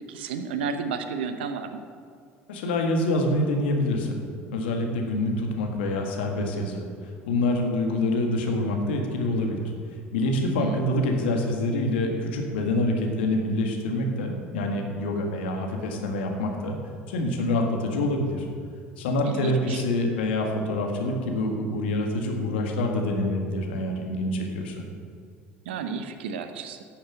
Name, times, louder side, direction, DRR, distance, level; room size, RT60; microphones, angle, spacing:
voice 1, 0.1-1.8 10.6-10.9 19.2-19.8 25.7-26.8, right 5 dB, 80° right, 8 dB, 0.9 m, -32 dB
voice 2, 2.5-4.2 4.5-6.8 7.3-9.7 10.1-16.8 17.1-18.5 19.0-24.8, left 1 dB, 80° left, 2 dB, 1.9 m, -26 dB
11.5 x 7.2 x 7.6 m, 2.1 s
hypercardioid pair, 70°, 6 cm